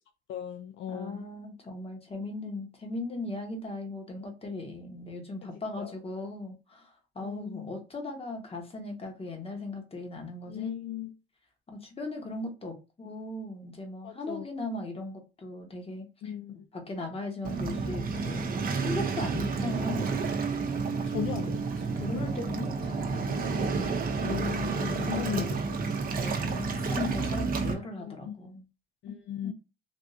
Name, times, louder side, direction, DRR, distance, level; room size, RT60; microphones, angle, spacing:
voice 1, 0.3-1.3 5.4-5.5 5.8-5.9 7.2-7.7 10.5-11.1 14.0-14.5 16.2-16.6 19.4-19.5 20.9-21.6 24.2-25.6 28.0-28.3 29.0-29.5, left 10 dB, 75° left, 0.4 m, -37 dB
voice 2, 0.9-10.7 11.7-16.3 16.7-20.1 21.0-21.5 21.9-23.5 24.9-25.5 26.2-28.6 29.1-29.2 29.4-29.5, left 2 dB, 30° left, 1.2 m, -38 dB
Waves surf, 17.4-27.7, right 4 dB, 45° right, 0.7 m, -30 dB
3.6 x 2.5 x 2.6 m
cardioid pair, 90°, 20 cm